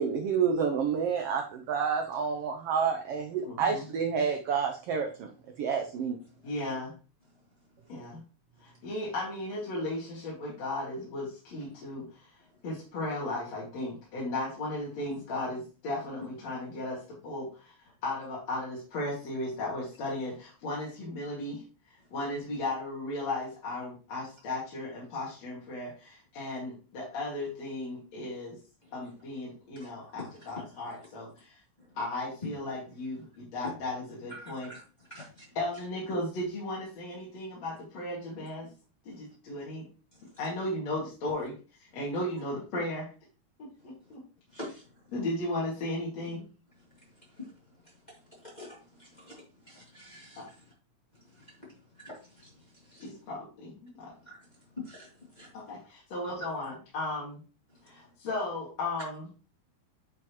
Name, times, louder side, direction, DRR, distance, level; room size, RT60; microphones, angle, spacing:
voice 1, 0.0-5.3 5.6-6.2, right 6 dB, 75° right, 1.4 m, -29 dB
voice 2, 3.4-3.8 6.4-6.9 7.9-8.2 8.6-12.4 12.6-21.6 22.1-28.6 28.9-31.6 31.9-34.7 35.5-38.7 39.0-39.9 40.4-43.1 43.6-44.2 45.1-46.4 50.4-50.5 53.0-54.1 55.5-57.4 57.8-59.3, left 2 dB, 60° left, 3.3 m, -36 dB
voice 3, 34.3-34.8 35.1-35.4 44.5-44.8 47.4-47.5 48.4-50.4 51.3-51.5 52.0-52.5 52.9-53.0 54.3-54.4 54.8-55.1 55.4-55.5 56.4-56.5, left 1 dB, 15° left, 2.8 m, -45 dB
9.2 x 5.9 x 3.0 m
omnidirectional pair, 3.5 m